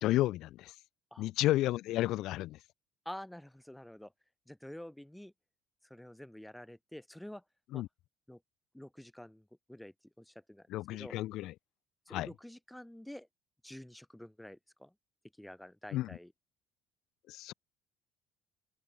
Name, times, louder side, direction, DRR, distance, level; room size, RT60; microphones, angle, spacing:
voice 1, 0.0-0.7 1.2-2.6 7.7-7.9 10.7-11.5 12.1-12.3 15.9-16.2 17.3-17.5, left 16 dB, 75° left, 1.6 m, -32 dB
voice 2, 3.1-4.1 4.5-5.3 5.9-7.4 7.7-7.8 8.3-8.4 8.7-10.7 11.0-11.1 12.1-13.3 13.6-14.9 15.4-16.3, left 1 dB, 5° left, 1.8 m, -48 dB
open air
cardioid pair, 130°, 0 cm